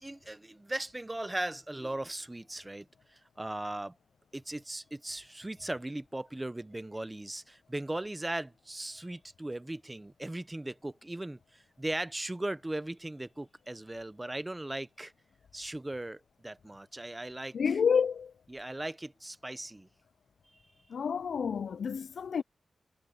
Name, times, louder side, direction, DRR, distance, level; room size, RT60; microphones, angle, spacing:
voice 1, 0.0-4.0 4.3-15.1 15.5-17.8 18.5-19.9 20.5-20.6, right 1 dB, 15° right, 0.7 m, -38 dB
voice 2, 17.5-18.3 20.9-22.4, left 6 dB, 65° left, 0.3 m, -29 dB
wide cardioid pair, 155°, 0 cm